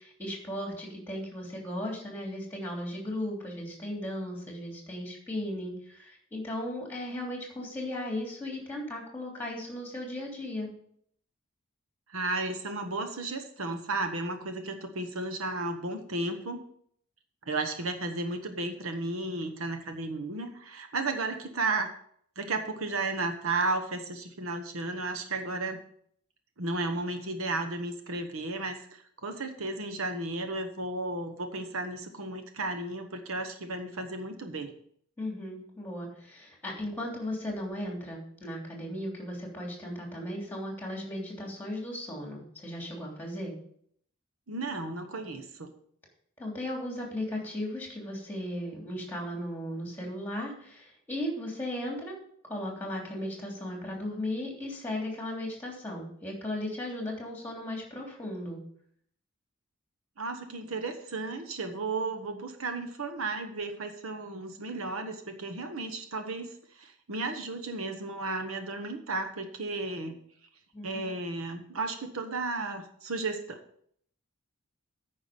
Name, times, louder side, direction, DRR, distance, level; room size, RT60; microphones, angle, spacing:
voice 1, 0.0-10.7 35.2-43.5 46.4-52.2 52.5-58.6 70.7-71.1, left 1 dB, 10° left, -1 dB, 3.1 m, -36 dB
voice 2, 12.1-16.6 17.5-21.9 22.4-25.8 26.6-34.7 44.5-45.7 60.2-66.5 66.7-70.2 70.8-73.6, right 2 dB, 70° right, 6 dB, 1.2 m, -34 dB
9.4 x 5.9 x 7.0 m, 0.65 s
head